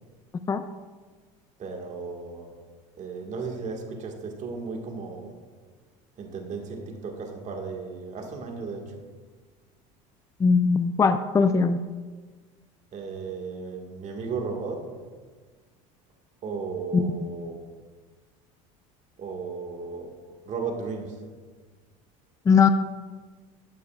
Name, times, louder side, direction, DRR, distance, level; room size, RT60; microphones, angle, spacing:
voice 1, 1.6-2.5 3.0-5.4 6.2-9.0 12.9-14.9 16.4-17.7 19.2-21.2, right 4 dB, 45° right, 2 dB, 1.7 m, -35 dB
voice 2, 10.4-11.8 16.9-17.0 22.5-22.7, left 5 dB, 20° left, 10 dB, 0.4 m, -20 dB
11.5 x 8.4 x 2.4 m, 1.4 s
supercardioid pair, 90°, 17 cm